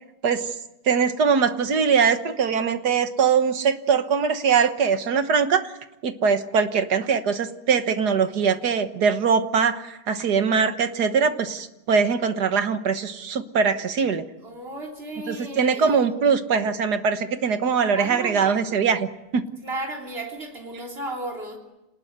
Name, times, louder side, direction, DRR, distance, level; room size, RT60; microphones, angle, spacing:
voice 1, 0.9-5.7 6.0-14.3 15.3-19.1 19.3-19.5, right 6 dB, 65° right, 9 dB, 1.9 m, -22 dB
voice 2, 14.4-16.1 17.9-18.6 19.6-21.6, right 2 dB, 35° right, 2 dB, 3.7 m, -34 dB
27.0 x 19.5 x 8.1 m, 0.95 s
omnidirectional pair, 1.9 m